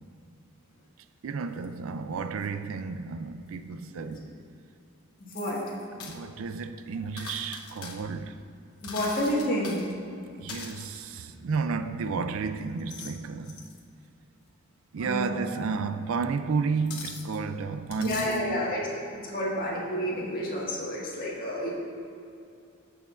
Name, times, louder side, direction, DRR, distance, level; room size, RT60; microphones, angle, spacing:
voice 1, 1.2-4.3 6.0-8.4 10.4-13.6 14.9-18.7, right 5 dB, 70° right, 0.4 m, -32 dB
sound 1, 1.6-1.7 2.4-2.5 4.1-4.2 5.3-6.2 7.2-8.0 8.8-9.9 10.5-11.2 12.6-13.2 13.4-13.8 15.5-15.6 16.9-17.4 17.9-18.5, left 5 dB, 85° left, 0.9 m, -42 dB
voice 2, 8.8-9.8 15.0-15.3 18.0-21.7, equal, 40° left, 1.6 m, -30 dB
15.0 x 5.9 x 2.4 m
head